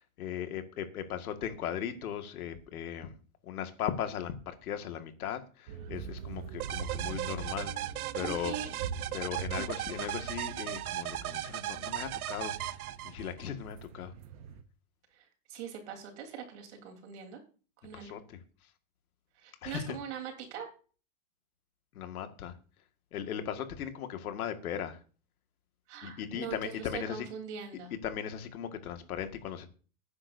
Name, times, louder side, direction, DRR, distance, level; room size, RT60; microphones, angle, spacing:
voice 1, 0.0-3.2 3.4-8.6 9.1-12.5 13.0-14.1 17.9-18.4 19.6-20.0 21.9-22.6 23.1-25.0 26.0-27.3 28.0-29.7, left 9 dB, 85° left, 7 dB, 2.0 m, -38 dB
sound 1, 5.7-14.6, right 6 dB, 25° right, 0.7 m, -43 dB
sound 2, 6.6-13.5, right 15 dB, 85° right, 0.7 m, -37 dB
voice 2, 8.2-8.7 9.6-9.7 15.1-17.4 17.8-18.1 19.4-20.7 25.9-27.9, right 7 dB, 50° right, 2 dB, 3.8 m, -42 dB
18.5 x 9.6 x 2.7 m, 0.38 s
supercardioid pair, 175°, 43 cm